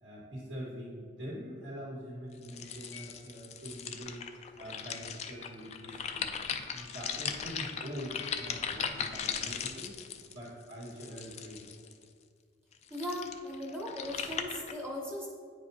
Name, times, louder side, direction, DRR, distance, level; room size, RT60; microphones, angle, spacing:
voice 1, 0.0-6.3 6.7-11.7, equal, 75° right, -7 dB, 1.7 m, -44 dB
sound 1, 2.4-12.0 12.7-14.7, left 7 dB, 35° left, 0.3 m, -38 dB
sound 2, 2.6-9.8, left 6 dB, 75° left, 1.2 m, -56 dB
voice 2, 12.9-15.3, left 1 dB, 10° right, -3 dB, 0.7 m, -38 dB
9.1 x 4.8 x 2.8 m, 2.1 s
head